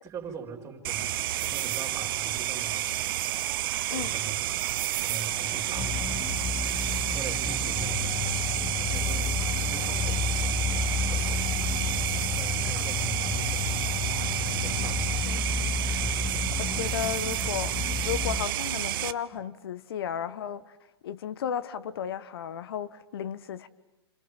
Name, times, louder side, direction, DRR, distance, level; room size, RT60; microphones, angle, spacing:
voice 1, 0.0-3.1 3.8-10.8 11.0-13.8 14.4-15.6 15.9-16.7, right 4 dB, 25° right, 4.4 m, -43 dB
sound 1, 0.8-19.1, right 14 dB, 55° right, 1.0 m, -30 dB
sound 2, 5.7-18.5, left 4 dB, 25° left, 1.8 m, -33 dB
sound 3, 7.7-15.2, left 11 dB, 85° left, 2.1 m, -35 dB
voice 2, 16.6-17.7 18.0-20.7 21.0-23.7, left 9 dB, 60° left, 1.4 m, -34 dB
29.5 x 26.5 x 7.4 m
hypercardioid pair, 115°, 14 cm